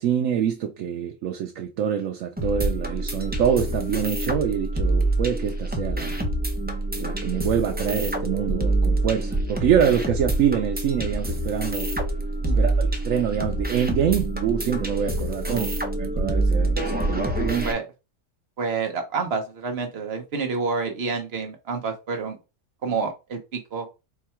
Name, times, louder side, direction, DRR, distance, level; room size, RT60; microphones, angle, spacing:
voice 1, 0.0-6.2 7.0-11.9 12.6-15.7 16.0-17.7, right 9 dB, 85° right, 1.0 m, -25 dB
sound 1, 2.4-17.7, right 2 dB, 15° right, 0.4 m, -26 dB
voice 2, 12.4-12.8 15.5-15.7 17.6-17.8 18.6-22.4 22.8-23.9, right 4 dB, 55° right, 1.2 m, -28 dB
4.6 x 2.3 x 4.3 m
omnidirectional pair, 1.3 m